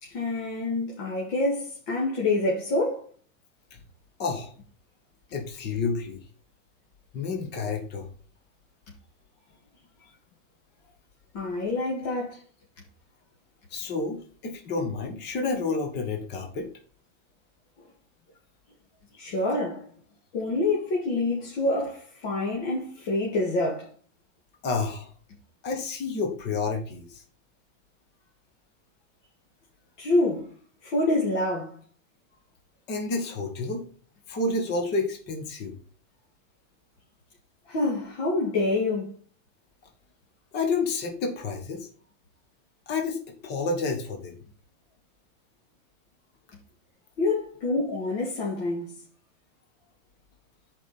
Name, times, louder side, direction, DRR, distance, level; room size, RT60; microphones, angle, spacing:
voice 1, 0.0-3.1 11.3-12.4 19.2-19.9 20.3-23.9 30.0-30.5 30.8-31.8 37.7-39.1 47.2-49.0, left 2 dB, 45° left, 2.3 m, -27 dB
voice 2, 4.2-4.5 5.3-6.2 7.1-8.1 13.7-16.7 24.6-25.1 25.6-27.2 32.9-33.8 34.3-35.7 40.5-41.9 42.9-44.4, left 3 dB, 25° left, 1.6 m, -29 dB
11.0 x 5.3 x 4.3 m
supercardioid pair, 155°, 40 cm